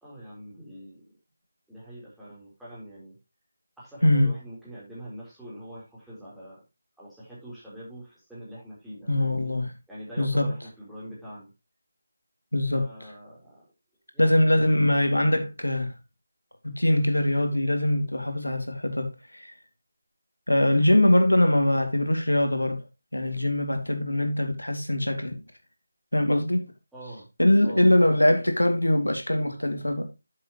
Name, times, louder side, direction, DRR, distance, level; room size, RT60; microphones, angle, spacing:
voice 1, 0.0-1.1 1.7-3.2 3.8-6.6 7.0-9.5 9.9-11.5 12.7-13.7 14.1-14.5 14.8-15.5 26.9-27.3 27.6-27.9, right 1 dB, ahead, 4.1 m, -44 dB
voice 2, 9.1-9.7 10.2-10.5 12.5-12.9 14.2-15.9 16.6-19.5 20.5-22.8 23.1-25.4 26.1-26.7 27.4-30.1, left 1 dB, 80° left, 2.4 m, -22 dB
10.5 x 7.6 x 3.1 m
figure-of-eight pair, 160°, 0 cm